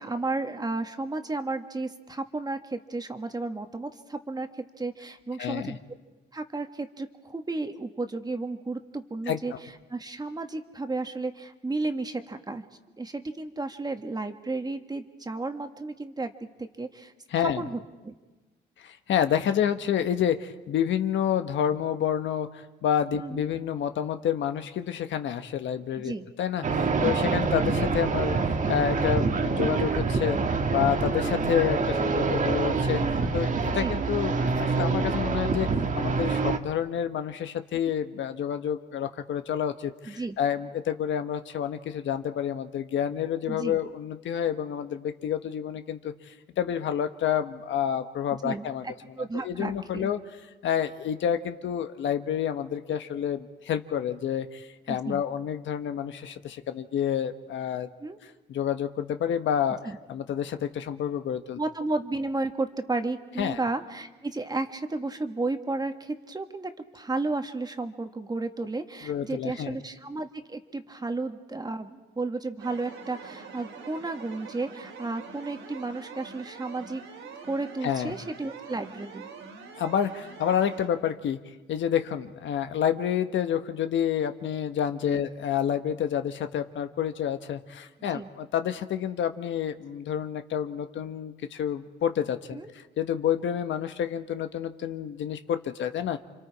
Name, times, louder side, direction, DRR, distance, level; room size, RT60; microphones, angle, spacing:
voice 1, 0.0-5.8 6.3-12.6 13.0-16.3 16.6-17.1 17.4-17.8 18.0-18.1 23.1-23.4 26.0-26.2 31.1-31.4 33.7-34.0 40.1-40.4 43.5-43.8 48.4-50.1 54.9-55.2 58.0-58.2 59.8-60.0 61.6-77.0 77.5-79.3 85.1-85.3 88.1-88.3 92.5-92.7, right 3 dB, 20° right, 7 dB, 1.5 m, -33 dB
voice 2, 5.4-5.8 9.3-9.6 17.3-17.6 18.8-30.4 30.7-33.0 33.3-35.7 35.9-48.8 49.4-50.2 50.6-57.9 58.5-59.8 60.1-61.6 63.4-63.6 69.0-69.8 77.8-78.1 79.8-81.4 81.7-96.2, left 9 dB, 70° left, 8 dB, 1.2 m, -29 dB
sound 1, 26.6-36.6, right 4 dB, 40° right, 1.5 m, -26 dB
sound 2, 72.6-80.9, right 5 dB, 85° right, 3.6 m, -44 dB
29.5 x 25.5 x 4.8 m, 1.2 s
cardioid pair, 90°, 20 cm